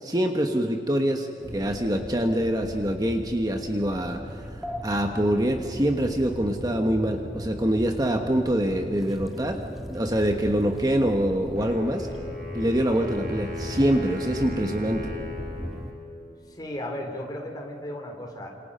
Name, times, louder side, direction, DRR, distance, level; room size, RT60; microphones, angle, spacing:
voice 1, 0.0-4.4 4.8-9.6 9.9-12.1 12.5-15.1, right 1 dB, 20° right, 4 dB, 1.3 m, -25 dB
sound 1, 1.4-15.9, equal, ahead, 1.5 m, -37 dB
Wind instrument woodwind instrument, 11.6-16.6, left 4 dB, 55° right, 5.8 m, -38 dB
voice 2, 16.5-18.5, left 1 dB, 25° left, 2 dB, 3.6 m, -35 dB
29.0 x 27.5 x 5.6 m, 2.8 s
head